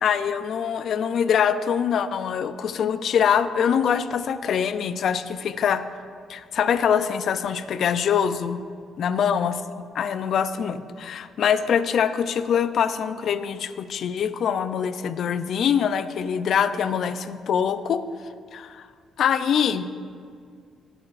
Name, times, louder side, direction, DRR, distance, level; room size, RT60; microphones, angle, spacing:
voice 1, 0.0-5.8 6.3-8.6 9.0-18.0 18.5-18.9 19.2-19.9, left 7 dB, 65° left, 12 dB, 0.4 m, -24 dB
16.0 x 7.8 x 2.5 m, 2.1 s
cardioid pair, 90°, 0 cm